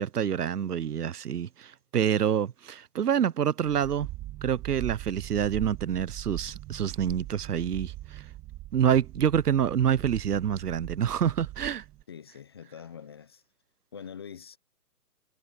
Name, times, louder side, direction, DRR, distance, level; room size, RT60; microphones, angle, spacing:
voice 1, 0.0-4.1 4.4-8.2 8.7-11.8, right 9 dB, 75° right, 0.9 m, -27 dB
sound 1, 3.6-12.0, right 15 dB, 15° right, 1.9 m, -41 dB
voice 2, 12.1-13.4 13.9-14.6, left 7 dB, 15° left, 0.7 m, -44 dB
hypercardioid pair, 155°, 47 cm